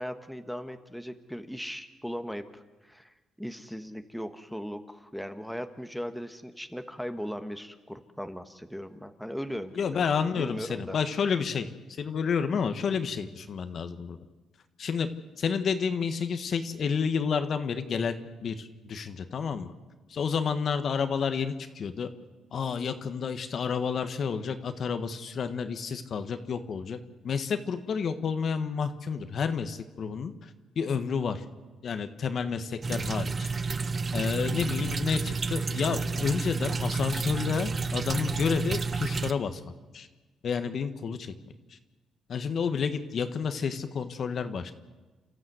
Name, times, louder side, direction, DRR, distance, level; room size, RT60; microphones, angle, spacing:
voice 1, 0.0-10.0 10.4-11.0, equal, ahead, 7 dB, 1.4 m, -38 dB
voice 2, 9.7-11.7 12.0-14.2 14.8-15.1 15.4-19.7 20.1-22.1 22.5-27.0 27.2-30.5 30.7-31.4 31.8-33.5 34.1-39.6 39.9-40.1 40.4-41.3 42.3-44.7, left 6 dB, 55° left, 9 dB, 1.4 m, -30 dB
sound 1, 32.8-39.3, right 4 dB, 35° right, 1.0 m, -30 dB
29.0 x 13.5 x 8.0 m, 1.2 s
cardioid pair, 90°, 0 cm